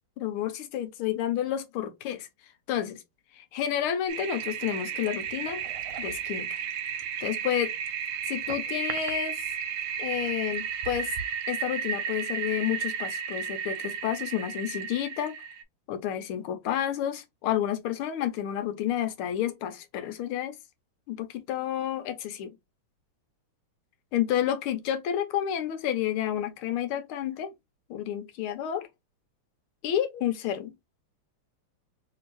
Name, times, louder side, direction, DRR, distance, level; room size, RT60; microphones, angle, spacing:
voice 1, 0.2-2.3 2.7-3.0 3.4-5.6 6.0-6.6 7.2-7.7 8.2-9.4 10.0-11.1 11.5-15.3 15.9-20.6 21.1-22.5 24.1-27.5 27.9-28.9 29.8-30.7, left 10 dB, 85° left, 1.6 m, -30 dB
Toilet flush, 4.1-15.6, right 7 dB, 90° right, 1.5 m, -33 dB
3.4 x 3.2 x 3.0 m
omnidirectional pair, 2.3 m